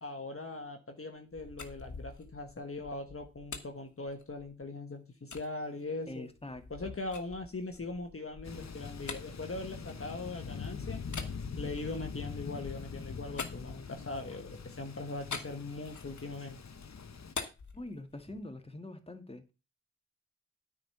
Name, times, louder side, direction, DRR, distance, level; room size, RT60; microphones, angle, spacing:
voice 1, 0.0-6.3 6.7-11.0 11.6-16.6, left 2 dB, 50° left, 1.4 m, -41 dB
sound 1, 1.2-4.7 5.3-5.5 6.1-10.5 11.1-14.3 15.3-16.4 16.7-18.5, left 5 dB, 90° left, 1.4 m, -46 dB
voice 2, 6.1-7.0 17.7-19.5, left 1 dB, 20° left, 1.8 m, -44 dB
Thunder, 8.4-17.3, left 5 dB, 65° left, 0.9 m, -43 dB
9.5 x 5.0 x 6.8 m
wide cardioid pair, 60°, 29 cm